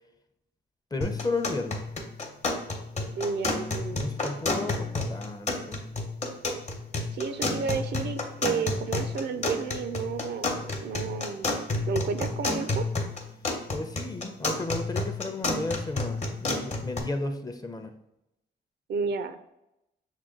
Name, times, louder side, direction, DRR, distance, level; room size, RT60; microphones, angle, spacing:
voice 1, 0.9-1.9 3.9-5.8 13.7-17.9, left 2 dB, 20° left, 8 dB, 0.5 m, -33 dB
sound 1, 1.0-17.0, left 2 dB, 40° left, 0.9 m, -31 dB
voice 2, 3.2-4.1 7.1-11.5 11.9-12.8 18.9-19.4, right 5 dB, 70° right, 10 dB, 0.5 m, -32 dB
6.2 x 2.2 x 3.7 m, 0.87 s
cardioid pair, 75°, 18 cm